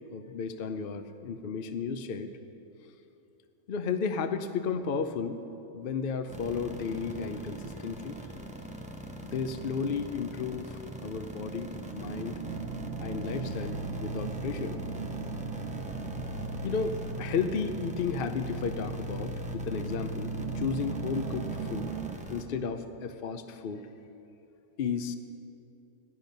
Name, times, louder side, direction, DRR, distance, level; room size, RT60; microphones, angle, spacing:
voice 1, 0.1-2.3 3.7-5.4 5.7-8.2 9.2-12.4 13.0-14.8 16.6-21.9 22.3-23.8 24.8-25.2, left 5 dB, 65° left, 9 dB, 0.5 m, -33 dB
sound 1, 6.3-22.4, right 1 dB, 5° right, 0.8 m, -42 dB
sound 2, 6.3-22.2, right 9 dB, 60° right, 0.9 m, -43 dB
sound 3, 12.4-21.8, equal, 85° left, 1.8 m, -39 dB
16.5 x 12.0 x 5.3 m, 2.8 s
omnidirectional pair, 1.6 m